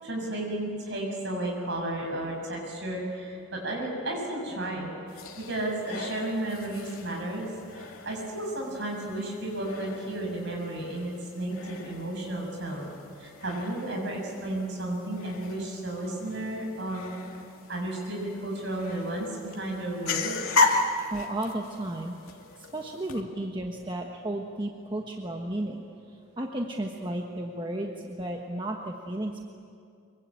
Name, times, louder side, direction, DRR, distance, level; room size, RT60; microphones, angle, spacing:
voice 1, 0.0-17.2 17.7-20.4, right 1 dB, 55° right, 0 dB, 7.3 m, -33 dB
sound 1, 5.1-23.2, left 3 dB, 85° left, 2.4 m, -35 dB
voice 2, 21.1-22.1 22.6-29.5, right 1 dB, 20° right, 1 dB, 1.3 m, -33 dB
24.5 x 23.5 x 8.9 m, 2.4 s
head